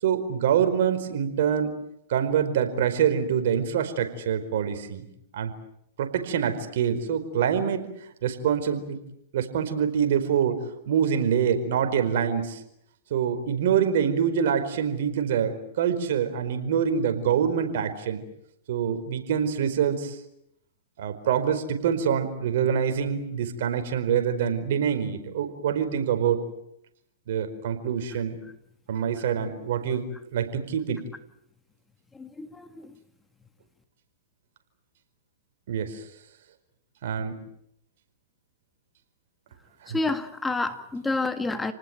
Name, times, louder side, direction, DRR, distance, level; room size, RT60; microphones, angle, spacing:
voice 1, 0.0-1.7 2.1-5.0 5.3-5.5 6.0-7.9 8.2-9.0 9.3-10.6 10.9-12.6 13.1-18.2 18.7-20.2 21.0-26.4 27.3-28.4 28.9-31.0 35.7-36.0 37.0-37.4 39.8-40.0, right 8 dB, 65° right, 8 dB, 4.7 m, -25 dB
voice 2, 32.2-32.9 39.9-41.7, left 3 dB, 10° left, 9 dB, 1.9 m, -29 dB
30.0 x 19.5 x 9.0 m, 0.77 s
hypercardioid pair, 120°, 0 cm